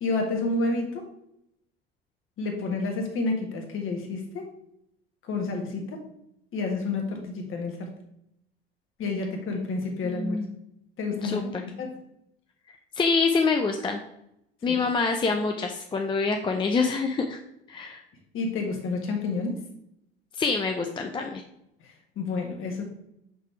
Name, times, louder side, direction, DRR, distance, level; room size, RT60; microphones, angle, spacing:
voice 1, 0.0-1.1 2.4-4.5 5.2-6.0 6.5-8.0 9.0-10.5 11.0-11.9 14.7-14.8 18.3-19.6 21.8-22.8, left 3 dB, 45° left, 3 dB, 1.6 m, -30 dB
voice 2, 10.0-10.5 11.2-11.6 13.0-14.0 14.6-17.4 17.7-18.0 20.4-21.4, left 4 dB, 15° left, 4 dB, 0.5 m, -26 dB
5.5 x 4.1 x 4.5 m, 0.78 s
figure-of-eight pair, 70°, 30 cm